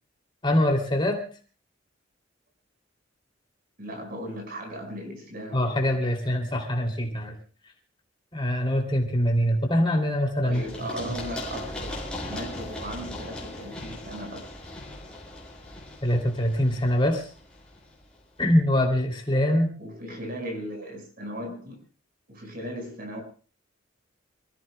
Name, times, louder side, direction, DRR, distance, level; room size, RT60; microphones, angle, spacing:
voice 1, 0.4-1.2 5.5-7.3 8.3-10.6 16.0-17.3 18.4-19.7, left 1 dB, 25° left, 1 dB, 2.8 m, -23 dB
voice 2, 3.8-5.6 10.4-12.0 12.3-14.5 19.8-21.8 22.3-23.2, equal, 50° right, 3 dB, 5.3 m, -37 dB
Run, 10.5-18.2, left 1 dB, 5° left, 5.3 m, -39 dB
28.0 x 15.5 x 2.2 m, 0.39 s
head